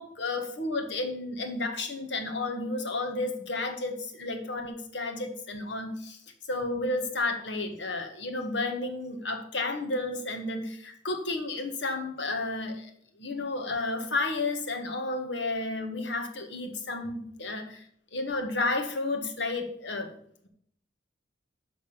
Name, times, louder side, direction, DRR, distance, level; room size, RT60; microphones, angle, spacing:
voice 1, 0.0-6.2 6.5-12.9 13.2-17.8 18.1-20.1, left 2 dB, 70° left, 4 dB, 1.6 m, -32 dB
11.5 x 3.9 x 7.1 m, 0.66 s
head